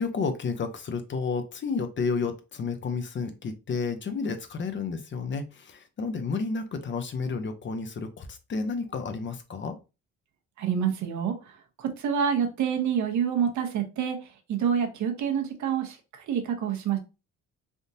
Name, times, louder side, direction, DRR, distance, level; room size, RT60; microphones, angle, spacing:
voice 1, 0.0-9.8, left 4 dB, 40° left, 0.6 m, -31 dB
voice 2, 10.6-11.3 11.8-14.2 14.5-16.0 16.3-17.0, right 8 dB, 70° right, 0.9 m, -27 dB
3.5 x 2.6 x 2.7 m
cardioid pair, 90°, 30 cm